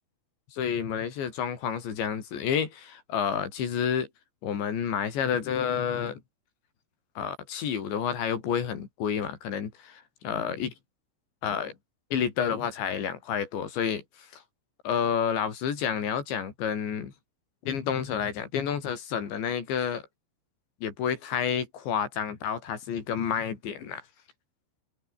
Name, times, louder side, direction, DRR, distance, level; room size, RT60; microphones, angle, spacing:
voice 1, 0.5-4.1 4.4-6.2 7.2-10.7 11.4-11.8 12.1-14.0 14.3-14.4 14.9-17.1 17.6-20.0 20.8-24.0, left 8 dB, 65° left, 5.8 m, -29 dB
omnidirectional pair, 5.5 m